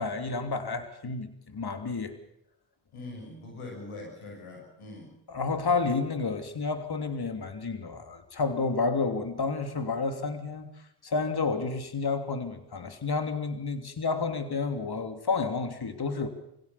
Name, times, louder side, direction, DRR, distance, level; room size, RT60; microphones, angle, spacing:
voice 1, 0.0-2.2 5.3-10.7 11.0-16.3, left 4 dB, 50° left, 8 dB, 3.0 m, -30 dB
voice 2, 2.9-5.1, left 2 dB, 80° left, 1 dB, 6.2 m, -42 dB
24.5 x 16.5 x 7.0 m, 0.78 s
supercardioid pair, 45°, 50 cm